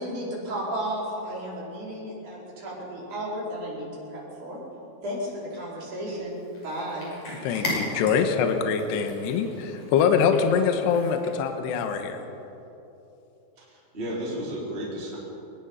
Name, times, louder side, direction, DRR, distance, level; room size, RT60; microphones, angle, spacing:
voice 1, 0.0-4.6 5.0-7.0 7.6-7.8, equal, 40° right, -5 dB, 6.2 m, -33 dB
Cat, 6.3-11.5, left 1 dB, 35° left, 6.8 m, -37 dB
voice 2, 7.4-12.2, left 6 dB, 70° left, 6 dB, 3.2 m, -24 dB
voice 3, 13.6-15.2, equal, 10° right, -6 dB, 4.5 m, -33 dB
24.0 x 21.0 x 5.8 m, 3.0 s
omnidirectional pair, 5.5 m